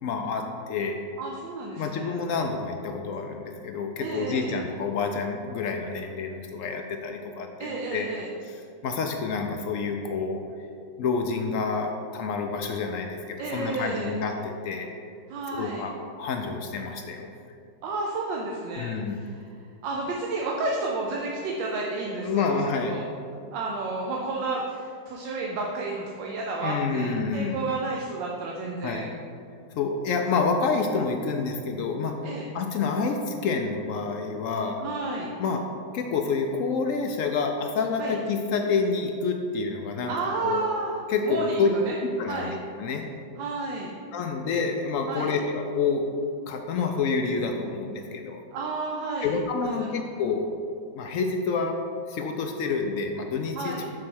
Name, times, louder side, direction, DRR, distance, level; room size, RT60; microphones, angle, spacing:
voice 1, 0.0-1.0 1.8-8.1 8.4-10.4 11.0-14.9 15.5-17.3 18.8-19.2 22.2-23.0 26.6-27.6 28.8-29.1 29.8-32.2 32.5-34.8 35.4-35.6 35.9-40.1 40.4-40.6 41.1-41.7 42.0-42.5 42.8-43.0 44.1-46.0 46.5-48.4 49.2-50.6 50.9-51.8 52.1-53.8, left 4 dB, 80° left, 3 dB, 0.7 m, -28 dB
voice 2, 1.2-2.1 4.0-4.6 7.6-8.3 13.4-14.1 15.3-15.9 17.8-19.5 19.8-22.6 22.9-23.0 23.5-29.1 32.2-32.5 34.8-35.3 38.0-38.2 40.0-41.0 41.2-41.9 42.2-42.5 43.4-43.9 45.1-45.3 48.5-49.3 49.6-50.1 53.5-53.8, right 3 dB, 85° right, -1 dB, 1.4 m, -31 dB
6.5 x 4.2 x 6.2 m, 2.4 s
omnidirectional pair, 2.0 m